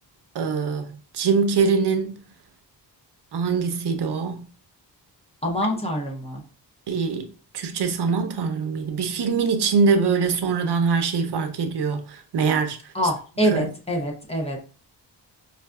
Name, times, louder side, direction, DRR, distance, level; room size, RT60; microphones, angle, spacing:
voice 1, 0.3-2.2 3.3-4.4 6.9-7.2 7.5-12.8 13.5-13.7, right 5 dB, 70° right, 0.6 m, -23 dB
voice 2, 5.4-6.4 12.9-14.6, equal, 15° left, 0.6 m, -25 dB
5.3 x 2.5 x 2.2 m
wide cardioid pair, 150°, 42 cm